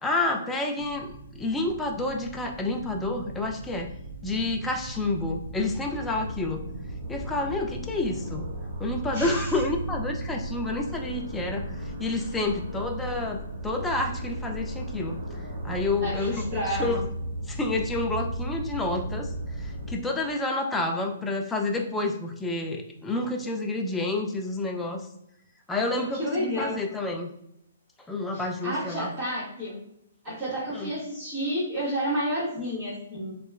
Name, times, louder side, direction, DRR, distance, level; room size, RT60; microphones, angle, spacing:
voice 1, 0.0-3.9 4.2-6.6 7.1-8.5 8.8-11.6 12.0-15.2 15.6-17.0 17.5-19.3 19.6-25.1 25.7-27.3 28.1-29.1 30.7-30.9, left 2 dB, 10° left, 2 dB, 0.3 m, -29 dB
sound 1, 0.8-19.9, right 1 dB, 60° right, 0.8 m, -36 dB
voice 2, 9.1-9.5 16.0-17.0 26.2-26.8 28.3-29.7 30.2-33.3, equal, 25° right, -11 dB, 1.4 m, -30 dB
2.9 x 2.1 x 2.2 m, 0.77 s
hypercardioid pair, 135°, 0 cm